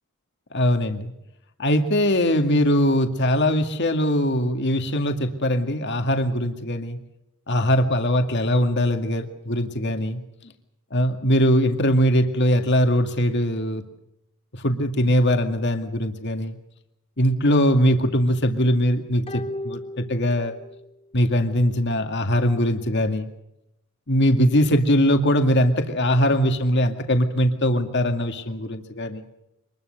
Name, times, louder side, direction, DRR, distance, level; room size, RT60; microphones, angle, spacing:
voice 1, 0.5-1.1 1.6-7.0 7.5-10.2 10.9-13.8 14.6-16.6 17.2-20.6 21.1-23.3 24.1-29.2, equal, 55° left, 6 dB, 2.1 m, -21 dB
sound 1, 19.3-20.9 21.2-21.3, left 1 dB, 25° left, 1.1 m, -36 dB
25.5 x 21.0 x 6.5 m, 0.82 s
head